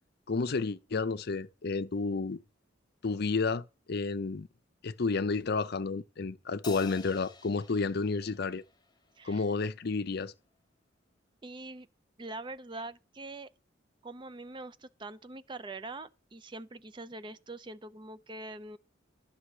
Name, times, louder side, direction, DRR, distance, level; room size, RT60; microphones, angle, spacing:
voice 1, 0.3-2.4 3.0-4.5 4.8-8.6 9.2-10.3, left 4 dB, 55° left, 0.6 m, -31 dB
Crash cymbal, 6.6-9.3, left 5 dB, 20° left, 0.8 m, -48 dB
voice 2, 11.4-11.9 12.2-13.5 14.0-18.8, right 2 dB, 25° right, 0.4 m, -43 dB
11.5 x 6.2 x 4.8 m
head